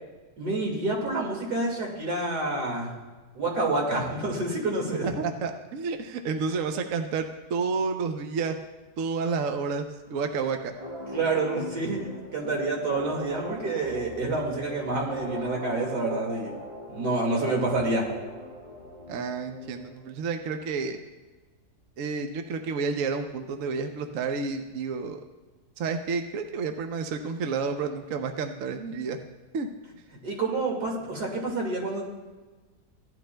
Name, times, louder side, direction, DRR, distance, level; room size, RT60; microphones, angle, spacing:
voice 1, 0.4-2.9 3.3-5.1 11.1-16.5 16.9-18.1 30.2-32.0, right 2 dB, 85° right, -1 dB, 2.7 m, -28 dB
voice 2, 5.2-8.6 9.0-10.7 19.1-21.0 22.0-25.2 25.8-29.2 29.5-29.7, right 5 dB, 60° right, 5 dB, 1.0 m, -30 dB
sound 1, 10.8-20.2, equal, 25° right, 2.5 m, -40 dB
16.5 x 11.5 x 2.2 m, 1.3 s
omnidirectional pair, 1.7 m